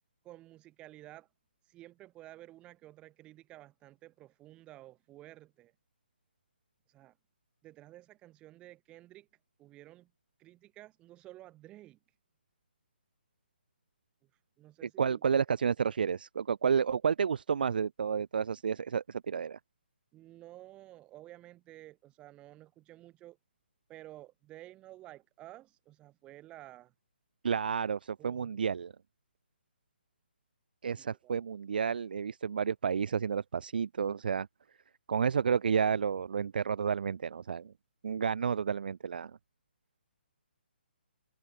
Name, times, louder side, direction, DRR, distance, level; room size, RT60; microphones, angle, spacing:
voice 1, 0.2-1.3 1.6-5.7 6.9-7.2 7.6-9.3 9.6-10.1 10.4-12.0 14.2-14.3 14.6-15.2 20.1-23.4 23.9-26.9 28.2-28.6 30.9-31.4, right 15 dB, 15° right, 4.6 m, -52 dB
voice 2, 15.0-19.6 27.4-28.9 30.8-34.5 35.1-37.7 38.0-39.4, right 6 dB, 55° right, 0.7 m, -31 dB
figure-of-eight pair, 140°, 6 cm